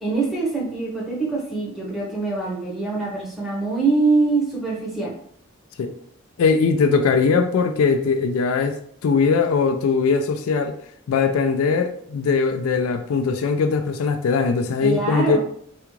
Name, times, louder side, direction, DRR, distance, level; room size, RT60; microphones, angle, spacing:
voice 1, 0.0-5.1 14.8-15.4, right 3 dB, ahead, 0.8 m, -23 dB
voice 2, 6.4-8.8 9.0-10.7 11.1-15.4, left 5 dB, 80° left, 0.3 m, -20 dB
3.5 x 2.3 x 3.0 m
head